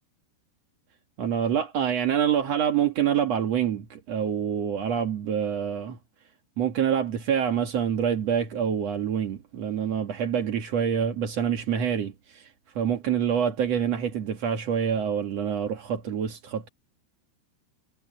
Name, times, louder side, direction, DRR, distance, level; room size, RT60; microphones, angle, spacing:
voice 1, 1.2-6.0 6.6-12.5 12.8-16.7, right 8 dB, 60° right, 1.7 m, -26 dB
omnidirectional pair, 5.5 m